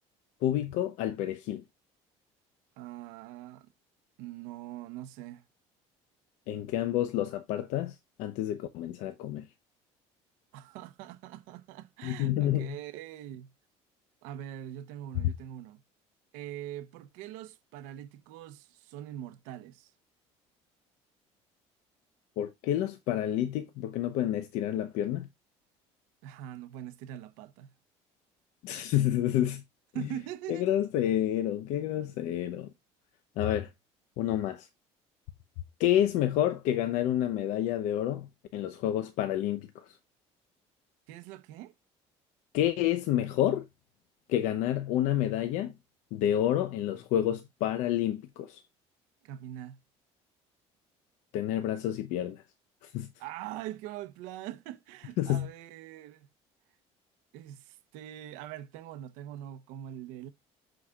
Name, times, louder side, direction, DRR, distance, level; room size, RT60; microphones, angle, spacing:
voice 1, 0.4-1.6 6.5-9.5 12.0-12.8 15.1-15.2 22.4-25.3 28.6-29.6 30.0-30.1 30.5-32.7 33.4-33.7 34.2-34.7 35.8-39.9 42.5-43.6 44.3-45.7 46.1-48.6 51.3-52.4 52.8-53.1 55.2-55.5, left 12 dB, 70° left, 0.9 m, -29 dB
voice 2, 2.8-3.7 4.2-5.4 10.5-13.5 14.2-15.8 16.3-19.9 26.2-27.7 29.9-30.7 41.1-41.7 49.2-49.8 53.2-56.3 57.3-60.3, right 12 dB, 90° right, 0.9 m, -43 dB
14.0 x 4.8 x 2.4 m
cardioid pair, 160°, 13 cm